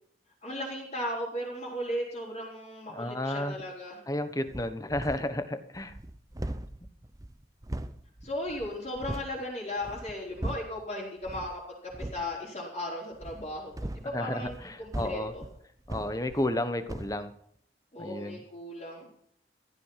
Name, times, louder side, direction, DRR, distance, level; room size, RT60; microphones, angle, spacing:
voice 1, 0.4-4.0 8.2-11.6 12.0-15.4 17.9-19.1, left 1 dB, 35° left, -9 dB, 4.7 m, -36 dB
voice 2, 2.9-3.6 4.1-6.0 14.1-15.3 15.9-17.3 18.0-18.4, left 1 dB, 20° left, 10 dB, 1.2 m, -32 dB
sound 1, 4.5-5.4 5.7-9.4 9.8-10.8 11.2-11.6 11.9-12.3 13.1-16.6 16.9-17.2, right 1 dB, 20° right, 0.7 m, -39 dB
15.5 x 12.0 x 5.9 m, 0.67 s
head